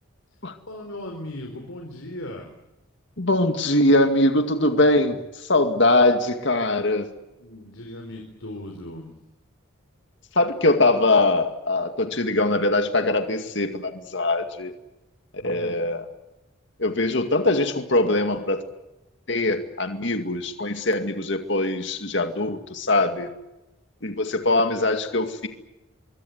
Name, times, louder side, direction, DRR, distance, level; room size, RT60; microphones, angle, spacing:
voice 1, 0.7-2.5 7.4-9.2 15.4-15.9, left 1 dB, 75° left, 2 dB, 4.2 m, -38 dB
voice 2, 3.2-7.1 10.4-14.7 15.3-16.0 16.8-18.6 19.3-23.3 24.0-25.5, left 2 dB, 55° left, 7 dB, 2.2 m, -22 dB
25.0 x 23.5 x 8.1 m, 0.95 s
head